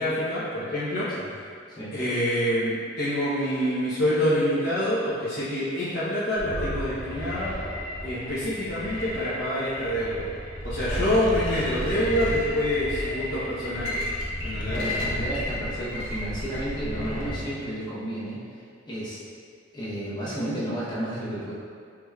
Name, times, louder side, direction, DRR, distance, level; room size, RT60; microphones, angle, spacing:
voice 1, 0.0-1.4 1.9-7.5 8.0-10.2 10.6-14.0 14.4-14.8, equal, 55° left, -12 dB, 0.9 m, -26 dB
sound 1, 6.4-17.4, left 1 dB, 85° left, 0.8 m, -32 dB
voice 2, 14.7-19.2 19.7-21.5, right 1 dB, 20° left, -8 dB, 0.9 m, -32 dB
4.8 x 3.2 x 2.4 m, 2.1 s
head